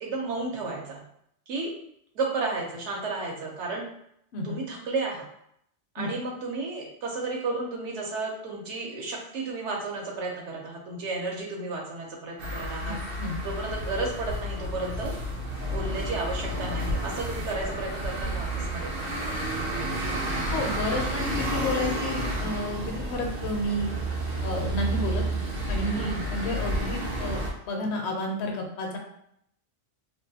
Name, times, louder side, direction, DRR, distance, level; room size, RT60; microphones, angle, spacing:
voice 1, 0.0-1.0 1.5-1.7 2.1-3.9 4.4-5.3 5.9-13.0 13.4-15.1 15.7-19.1 25.9-26.3, right 3 dB, 75° right, -1 dB, 1.0 m, -33 dB
Bus Road Noise, 12.4-27.5, right 1 dB, 60° right, 0.7 m, -31 dB
voice 2, 12.9-13.4 20.5-23.9 24.4-25.2 25.7-29.0, left 1 dB, 70° left, 2 dB, 0.8 m, -31 dB
2.5 x 2.2 x 2.7 m, 0.73 s
omnidirectional pair, 1.2 m